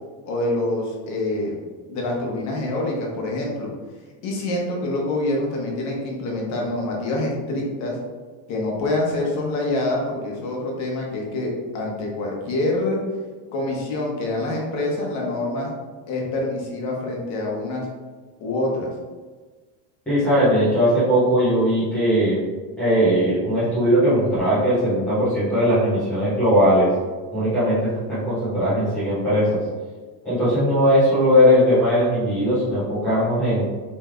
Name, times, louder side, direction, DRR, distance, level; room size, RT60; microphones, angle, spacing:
voice 1, 0.3-1.6 1.9-3.7 4.2-8.0 8.5-13.0 13.5-15.7 16.1-17.9 18.4-18.9, left 2 dB, 35° left, -1 dB, 0.9 m, -26 dB
voice 2, 20.1-22.4 22.8-26.9 27.3-29.6 30.2-33.6, equal, 5° left, -15 dB, 0.3 m, -19 dB
6.4 x 3.2 x 2.4 m, 1.4 s
cardioid pair, 180°, 49 cm